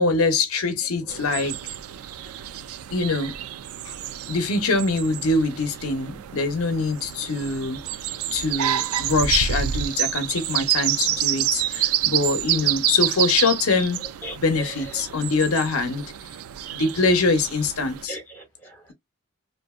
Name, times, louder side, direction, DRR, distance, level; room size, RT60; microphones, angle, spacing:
voice 1, 0.0-1.5 2.9-3.3 3.8-3.9 4.3-7.8 8.3-14.1 14.4-16.0 16.7-18.2, left 3 dB, 80° left, 0.7 m, -23 dB
sound 1, 1.1-18.0, right 11 dB, 80° right, 0.3 m, -28 dB
voice 2, 13.8-14.9 16.7-16.8 18.1-18.9, right 1 dB, 10° left, 1.7 m, -40 dB
2.7 x 2.6 x 2.3 m
head